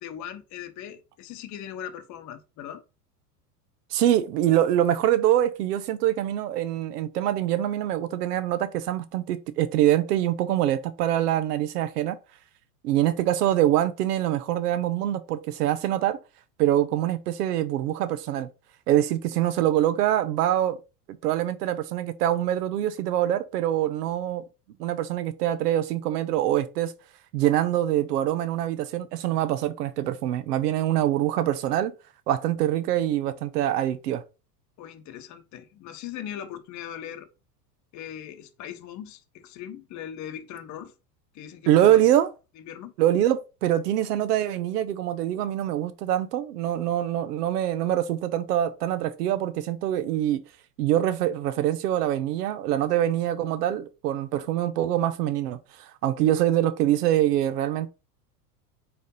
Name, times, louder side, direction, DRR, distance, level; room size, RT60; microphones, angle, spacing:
voice 1, 0.0-2.8 34.8-37.3 37.9-40.9 41.3-42.0 42.6-42.9, left 9 dB, 35° left, 1.0 m, -39 dB
voice 2, 3.9-12.2 12.8-16.2 16.6-18.5 18.9-20.8 21.2-24.4 24.8-26.9 27.3-31.9 32.3-34.2 41.7-42.3 43.0-50.4 50.8-57.9, right 12 dB, 70° right, 1.1 m, -24 dB
4.7 x 4.4 x 5.4 m
hypercardioid pair, 100°, 48 cm